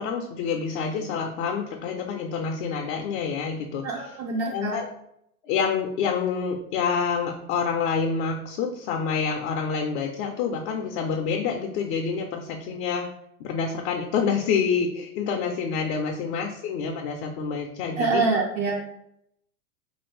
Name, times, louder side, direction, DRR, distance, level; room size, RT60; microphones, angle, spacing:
voice 1, 0.0-4.1 4.5-4.9 5.4-13.1 13.4-18.2, left 6 dB, 50° left, 3 dB, 0.5 m, -27 dB
voice 2, 3.8-4.8 18.0-18.8, right 4 dB, 40° right, -2 dB, 0.6 m, -25 dB
2.8 x 2.6 x 3.1 m, 0.76 s
hypercardioid pair, 110°, 46 cm